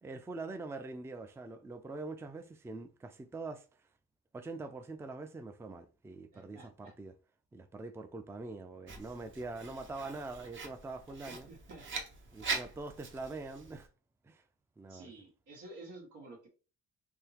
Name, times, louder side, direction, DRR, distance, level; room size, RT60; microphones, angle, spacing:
voice 1, 0.0-3.6 4.3-7.1 7.5-11.5 12.3-13.9 14.2-14.4 14.8-15.1, right 3 dB, 10° right, 0.4 m, -44 dB
voice 2, 6.3-7.0 11.3-11.8 14.9-16.5, right 2 dB, 90° right, 1.9 m, -51 dB
Writing, 8.9-13.9, right 4 dB, 40° right, 0.8 m, -42 dB
3.6 x 2.9 x 2.8 m
cardioid pair, 90°, 30 cm